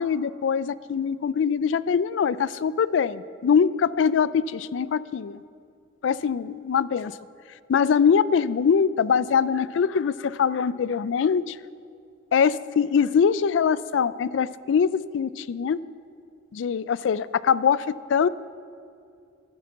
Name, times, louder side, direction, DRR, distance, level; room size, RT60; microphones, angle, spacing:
voice 1, 0.0-5.4 6.0-7.1 7.7-11.6 12.3-15.8 16.5-18.3, left 6 dB, 85° left, 18 dB, 0.3 m, -23 dB
10.5 x 9.5 x 7.2 m, 2.4 s
head